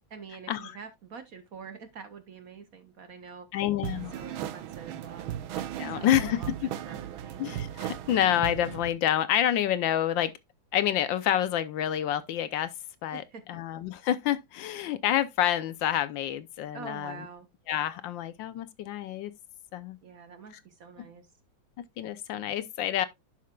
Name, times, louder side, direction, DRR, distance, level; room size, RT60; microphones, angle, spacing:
voice 1, 0.1-3.5 3.9-5.4 5.9-7.4 13.1-13.4 16.7-17.5 20.0-21.3, right 5 dB, 55° right, 1.0 m, -46 dB
voice 2, 3.5-4.2 5.8-6.7 7.4-10.3 10.7-12.7 13.0-13.2 13.5-17.1 17.7-19.3 19.7-20.0 21.8-23.1, left 11 dB, 75° left, 1.4 m, -28 dB
sound 1, 3.8-8.9, right 10 dB, 85° right, 1.6 m, -36 dB
11.0 x 5.9 x 2.3 m
omnidirectional pair, 2.2 m